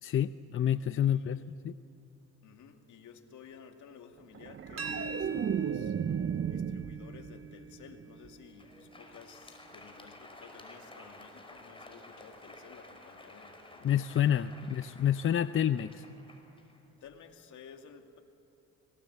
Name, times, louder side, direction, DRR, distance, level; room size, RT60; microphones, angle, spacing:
voice 1, 0.0-1.8 13.8-16.0, left 10 dB, 45° left, 12 dB, 0.6 m, -28 dB
voice 2, 1.0-1.5 2.4-6.0 6.5-14.6 17.0-18.2, left 6 dB, 75° left, 5 dB, 2.4 m, -54 dB
sound 1, 4.3-7.5 7.9-8.3, right 8 dB, 40° right, 0.8 m, -34 dB
sound 2, 4.8-10.5, right 3 dB, 60° right, 2.9 m, -45 dB
Crowd, 8.4-17.3, left 1 dB, 15° left, 4.9 m, -53 dB
26.0 x 20.5 x 8.1 m, 2.8 s
cardioid pair, 90°, 30 cm